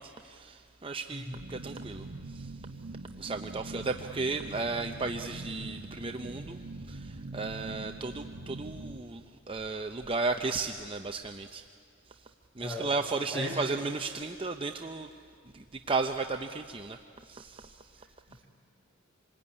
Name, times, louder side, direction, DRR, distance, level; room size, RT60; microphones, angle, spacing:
voice 1, 0.0-2.7 3.2-11.7 12.1-15.1 15.5-18.4, right 3 dB, 25° right, 5 dB, 0.6 m, -35 dB
sound 1, 1.3-9.0, right 2 dB, 65° right, 1.1 m, -43 dB
voice 2, 12.6-12.9 13.3-13.6 18.3-18.5, left 1 dB, 10° left, -3 dB, 7.1 m, -37 dB
26.5 x 22.0 x 9.8 m, 2.3 s
head